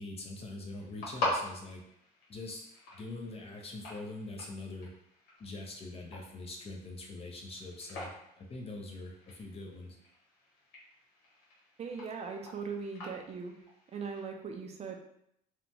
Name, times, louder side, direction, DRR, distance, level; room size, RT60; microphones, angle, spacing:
voice 1, 0.0-1.8 2.3-2.7 2.9-4.9 5.4-8.1 8.4-10.0, left 2 dB, 35° left, 1 dB, 0.6 m, -43 dB
sound 1, 0.7-14.3, left 2 dB, 85° left, 1.1 m, -43 dB
voice 2, 11.8-13.5 13.9-15.0, right 5 dB, 40° right, 3 dB, 0.4 m, -39 dB
2.9 x 2.2 x 2.6 m, 0.75 s
cardioid pair, 110°, 17 cm